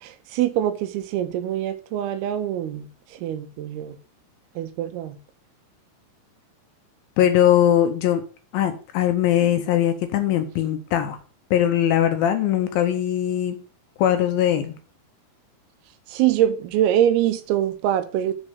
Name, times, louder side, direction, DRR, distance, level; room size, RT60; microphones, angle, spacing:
voice 1, 0.0-4.0 4.6-5.2 16.1-18.3, right 11 dB, 85° right, 2.5 m, -24 dB
voice 2, 7.2-8.2 8.5-11.2 11.5-13.6 14.0-14.7, left 11 dB, 75° left, 2.4 m, -20 dB
6.4 x 4.3 x 6.5 m
omnidirectional pair, 4.6 m